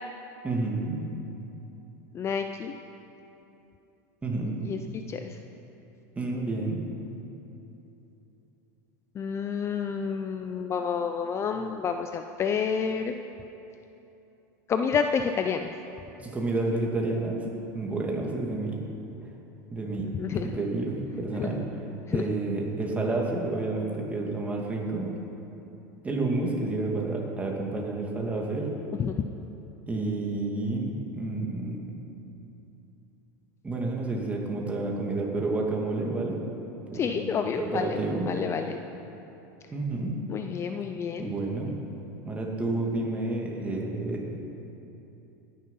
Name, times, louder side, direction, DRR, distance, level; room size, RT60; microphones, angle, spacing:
voice 1, 0.4-1.1 4.2-4.6 6.2-6.8 16.2-17.5 17.7-18.8 19.7-20.1 20.5-21.6 22.1-25.1 26.0-28.7 29.9-31.8 33.6-36.4 36.9-37.2 37.6-38.3 39.7-40.1 41.2-41.7 42.2-44.4, right 2 dB, 15° right, -2 dB, 2.5 m, -30 dB
voice 2, 2.1-2.8 4.6-5.4 9.2-13.2 14.7-15.7 20.1-20.5 21.4-21.6 22.1-22.2 29.0-29.3 36.9-38.0 38.3-38.8 40.3-41.3, left 6 dB, 30° left, 6 dB, 0.6 m, -29 dB
17.5 x 10.5 x 5.6 m, 3.0 s
supercardioid pair, 125°, 10 cm